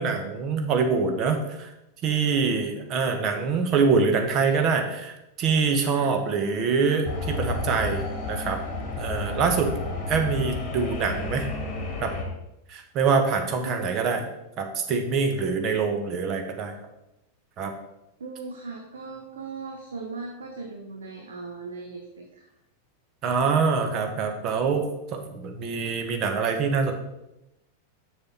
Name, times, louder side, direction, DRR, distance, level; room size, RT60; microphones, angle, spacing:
voice 1, 0.0-1.7 2.0-8.6 9.0-9.8 10.1-11.5 12.0-12.1 12.7-14.2 14.6-16.7 17.6-17.7 23.2-24.9 25.1-26.9, right 5 dB, 35° right, 5 dB, 1.2 m, -25 dB
sound 1, 7.0-12.2, left 3 dB, 15° left, 2.2 m, -31 dB
voice 2, 13.6-14.0 18.2-22.5, right 4 dB, 70° right, 2 dB, 0.9 m, -38 dB
6.8 x 6.3 x 4.1 m, 0.90 s
figure-of-eight pair, 90°, 0 cm